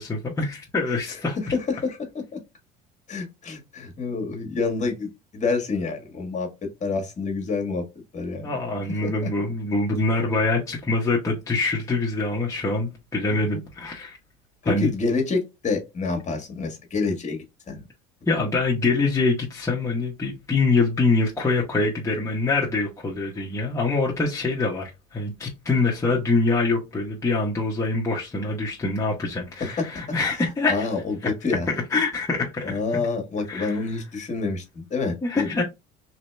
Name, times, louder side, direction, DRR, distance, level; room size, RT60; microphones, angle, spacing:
voice 1, 0.0-1.4 8.4-14.2 14.6-14.9 18.3-30.9 31.7-33.0 33.5-33.9 35.2-35.6, left 3 dB, 15° left, 1.0 m, -24 dB
voice 2, 1.5-2.0 3.1-7.8 8.1-8.6 9.0-9.3 13.3-13.6 14.6-17.9 29.6-30.0 30.7-31.7 32.6-35.5, left 4 dB, 35° left, 1.5 m, -28 dB
3.2 x 2.7 x 3.3 m
supercardioid pair, 90°, 21 cm